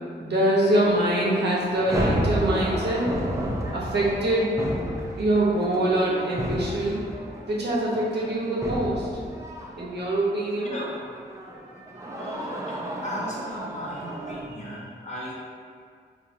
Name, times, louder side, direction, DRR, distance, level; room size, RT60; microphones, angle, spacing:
voice 1, 0.0-3.1 3.7-4.6 5.2-7.0 7.5-9.1 9.8-10.8, right 1 dB, 65° right, -5 dB, 0.8 m, -24 dB
sound 1, 0.6-10.2 10.5-14.4, equal, 15° right, 0.5 m, -32 dB
voice 2, 11.7-15.4, equal, 40° left, -6 dB, 0.8 m, -37 dB
4.4 x 2.4 x 2.8 m, 2.1 s
wide cardioid pair, 100°, 18 cm